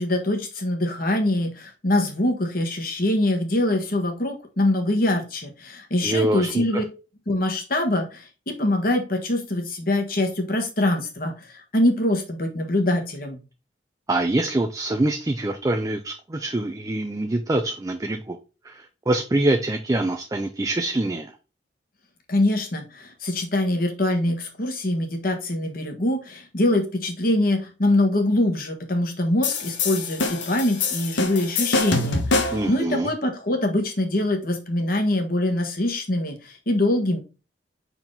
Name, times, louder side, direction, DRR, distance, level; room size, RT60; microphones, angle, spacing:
voice 1, 0.0-6.8 7.3-13.4 22.3-37.2, left 1 dB, 50° left, 1.4 m, -24 dB
voice 2, 6.0-6.8 14.1-18.4 18.6-21.3 32.5-33.1, right 2 dB, 20° right, 0.4 m, -25 dB
sound 1, 29.4-32.7, left 3 dB, 85° left, 1.2 m, -25 dB
5.6 x 4.5 x 3.8 m
head